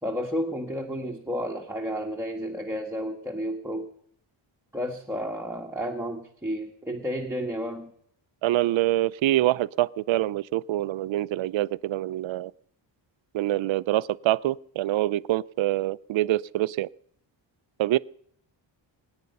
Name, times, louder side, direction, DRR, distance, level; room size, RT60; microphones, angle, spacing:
voice 1, 0.0-3.9 4.7-7.9, equal, 5° right, 1 dB, 1.3 m, -31 dB
voice 2, 8.4-12.5 13.3-16.9 17.8-18.0, right 15 dB, 75° right, 19 dB, 0.5 m, -25 dB
23.5 x 9.8 x 5.3 m, 0.66 s
wide cardioid pair, 130°, 47 cm